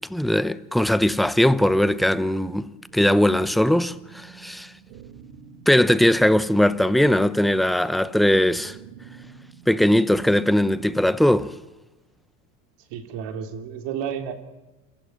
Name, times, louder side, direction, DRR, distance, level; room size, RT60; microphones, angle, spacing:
voice 1, 0.1-4.7 5.7-8.8 9.7-11.5, left 1 dB, ahead, 0.8 m, -20 dB
sound 1, 1.7-11.6, right 7 dB, 85° right, 2.1 m, -46 dB
voice 2, 12.9-14.3, right 8 dB, 65° right, 3.6 m, -31 dB
28.0 x 15.5 x 9.1 m
supercardioid pair, 95°, 46 cm